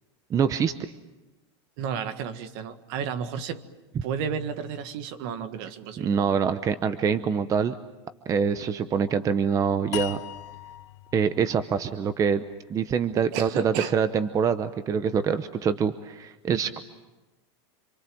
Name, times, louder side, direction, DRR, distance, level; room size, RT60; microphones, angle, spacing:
voice 1, 0.3-0.7 6.0-7.8 8.3-10.2 11.1-12.4 12.7-16.8, right 6 dB, 25° right, 12 dB, 0.8 m, -25 dB
voice 2, 1.8-3.6 4.0-6.2 13.2-13.9, right 7 dB, 55° right, 10 dB, 1.8 m, -32 dB
sound 1, 9.9-13.1, left 14 dB, 85° left, 1.3 m, -40 dB
27.5 x 23.0 x 7.8 m, 1.1 s
supercardioid pair, 140°, 14 cm